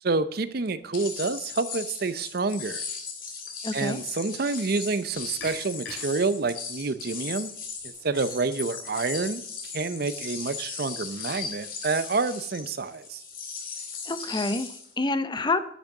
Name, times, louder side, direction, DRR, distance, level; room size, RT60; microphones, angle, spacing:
voice 1, 0.0-2.8 3.7-7.5 8.0-13.2, right 3 dB, 55° right, 14 dB, 0.6 m, -28 dB
sound 1, 0.9-14.9, left 5 dB, 50° left, 2.3 m, -37 dB
voice 2, 3.6-4.0 14.1-15.6, left 2 dB, 25° left, 11 dB, 0.6 m, -28 dB
sound 2, 4.8-9.9, left 3 dB, 65° left, 4.5 m, -49 dB
10.0 x 6.3 x 7.2 m, 0.66 s
head